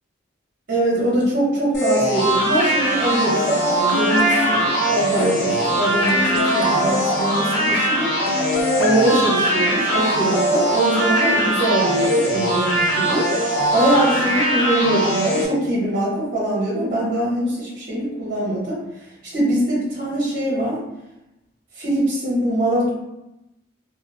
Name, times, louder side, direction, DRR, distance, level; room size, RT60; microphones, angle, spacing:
voice 1, 0.7-8.1 8.8-13.3 13.7-18.8 19.3-20.8 21.8-22.9, right 1 dB, 45° right, -6 dB, 0.9 m, -22 dB
sound 1, 1.7-15.5, right 1 dB, 65° left, 0.9 m, -21 dB
sound 2, 3.9-10.1, left 3 dB, 85° left, 0.4 m, -27 dB
2.2 x 2.1 x 3.2 m, 0.91 s
head